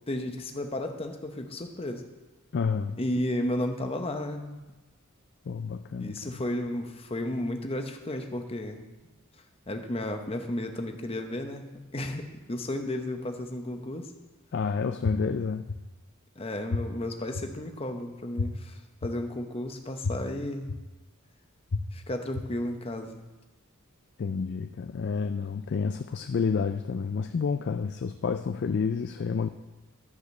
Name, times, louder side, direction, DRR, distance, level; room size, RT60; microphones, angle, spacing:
voice 1, 0.1-2.0 3.0-4.6 6.0-8.8 9.7-14.1 16.4-20.7 21.9-23.2, left 1 dB, 25° left, 5 dB, 0.8 m, -33 dB
voice 2, 2.5-3.0 5.5-6.3 14.5-15.7 24.2-29.5, left 5 dB, 50° left, 8 dB, 0.3 m, -29 dB
sound 1, 15.0-15.1 15.7-15.8 16.7-16.8 17.3-17.4 18.4-18.5 19.0-19.1 20.0-20.1 20.7-20.8 21.7-21.8 22.3-22.4, left 4 dB, 85° left, 0.7 m, -28 dB
12.0 x 5.1 x 6.4 m, 1.2 s
head